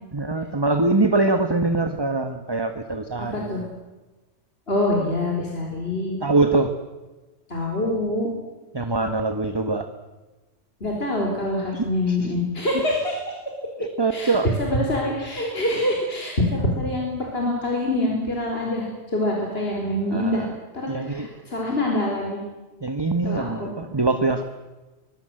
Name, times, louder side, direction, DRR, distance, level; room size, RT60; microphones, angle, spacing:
voice 1, 0.1-3.7 6.2-6.7 8.7-9.9 11.7-12.3 13.8-14.5 20.1-20.6 20.9-21.3 22.8-24.4, right 3 dB, 20° right, 8 dB, 1.3 m, -23 dB
voice 2, 3.3-3.6 4.7-6.2 7.5-8.3 10.8-13.1 14.1-14.3 14.6-20.4 20.7-22.4 23.2-23.7, left 1 dB, 55° left, -1 dB, 4.6 m, -25 dB
25.0 x 21.5 x 7.8 m, 1.1 s
omnidirectional pair, 1.3 m